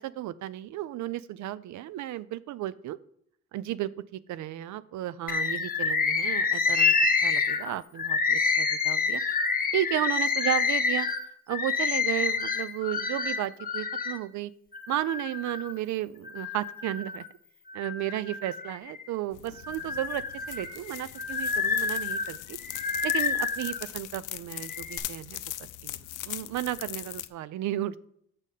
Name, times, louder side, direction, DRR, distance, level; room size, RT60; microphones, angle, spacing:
voice 1, 0.0-3.0 3.5-7.0 7.2-9.2 9.7-11.1 11.5-14.5 14.9-17.2 17.7-22.6 23.0-26.0 26.2-28.1, right 14 dB, 70° right, 17 dB, 0.5 m, -33 dB
Bird, 5.3-14.2 14.7-15.7 16.2-17.3 17.7-19.1 19.6-23.8 24.5-25.0, left 5 dB, 30° left, 0.9 m, -28 dB
sound 1, 19.3-27.3, left 15 dB, 85° left, 0.5 m, -40 dB
6.4 x 5.2 x 5.5 m, 0.68 s
cardioid pair, 90°, 30 cm